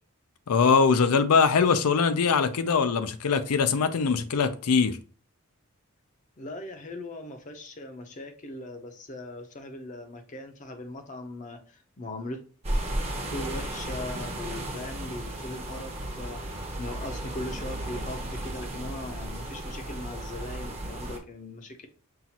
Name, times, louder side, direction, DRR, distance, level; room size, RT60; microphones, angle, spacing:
voice 1, 0.5-5.0, left 5 dB, 85° left, 0.5 m, -22 dB
voice 2, 6.4-12.4 13.2-21.9, left 1 dB, 35° left, 0.6 m, -39 dB
sound 1, 12.6-21.2, right 1 dB, 30° right, 0.7 m, -34 dB
5.6 x 2.5 x 2.8 m
head